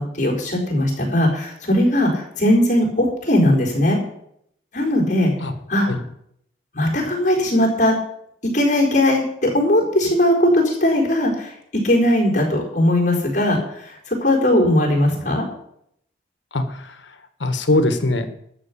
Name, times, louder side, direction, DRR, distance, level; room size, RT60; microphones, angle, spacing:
voice 1, 0.0-4.0 4.7-5.3 5.7-5.9 6.7-7.9 8.5-11.5 11.8-15.5, left 1 dB, 40° left, 0 dB, 4.2 m, -19 dB
voice 2, 16.5-18.4, left 2 dB, 90° left, 9 dB, 1.4 m, -22 dB
13.0 x 6.0 x 8.5 m, 0.72 s
head